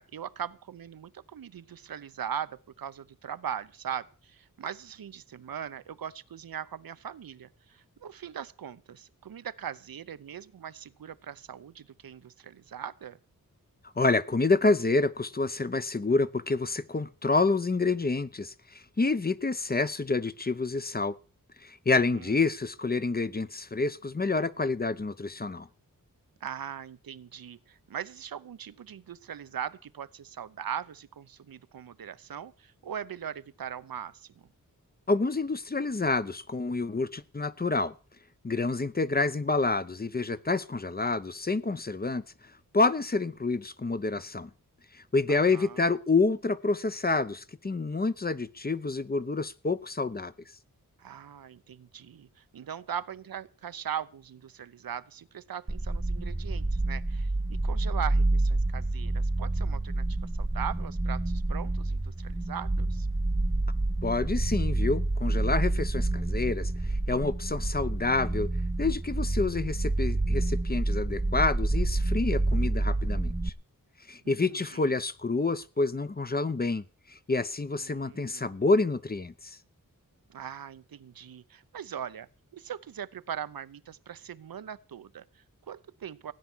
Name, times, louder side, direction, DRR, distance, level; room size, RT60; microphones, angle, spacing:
voice 1, 0.0-13.2 21.9-22.5 26.4-34.5 45.3-45.8 51.0-63.1 74.2-74.9 77.7-78.6 80.3-86.3, right 9 dB, 80° right, 0.8 m, -40 dB
voice 2, 14.0-21.2 21.6-25.7 35.1-37.9 38.4-42.2 42.7-44.5 44.9-50.3 64.0-66.7 67.1-68.5 68.8-73.5 74.1-76.8 77.1-79.6, left 3 dB, 25° left, 0.7 m, -28 dB
sound 1, 55.7-73.5, right 2 dB, 10° right, 0.7 m, -28 dB
16.5 x 9.5 x 6.1 m
wide cardioid pair, 90°, 34 cm